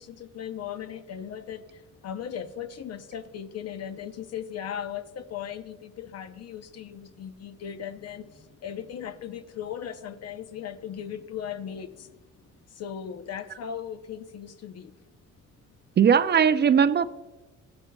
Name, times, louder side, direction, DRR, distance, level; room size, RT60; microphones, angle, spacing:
voice 1, 0.0-12.4 12.7-14.9, left 9 dB, 55° left, 0.7 m, -38 dB
voice 2, 16.0-17.1, right 7 dB, 35° right, 0.4 m, -19 dB
15.5 x 9.7 x 2.3 m
cardioid pair, 90°, 30 cm